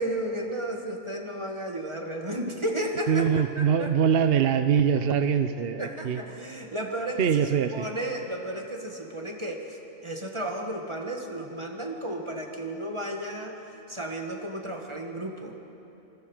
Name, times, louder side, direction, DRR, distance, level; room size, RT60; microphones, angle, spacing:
voice 1, 0.0-3.3 3.6-3.9 5.8-7.2 7.7-13.6 13.9-15.6, right 1 dB, 20° right, 1 dB, 1.8 m, -33 dB
voice 2, 3.1-6.2 7.2-7.9, right 7 dB, 55° right, 9 dB, 0.8 m, -23 dB
27.0 x 21.0 x 5.1 m, 2.9 s
omnidirectional pair, 1.4 m